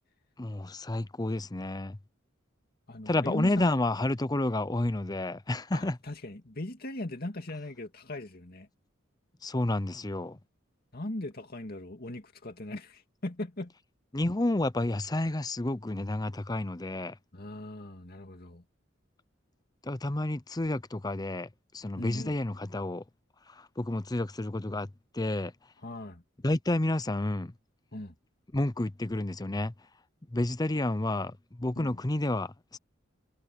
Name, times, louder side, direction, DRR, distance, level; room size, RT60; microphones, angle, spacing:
voice 1, 0.4-2.0 3.1-6.0 9.4-10.4 14.1-17.2 19.8-21.5 21.7-23.0 23.5-25.5 26.4-27.5 28.5-29.7 30.3-32.8, left 1 dB, 20° left, 0.7 m, -30 dB
voice 2, 2.9-3.7 5.7-8.7 10.9-13.7 17.3-18.6 22.0-22.4 25.8-26.2 27.9-28.1 31.8-32.0, left 1 dB, 50° left, 2.3 m, -39 dB
head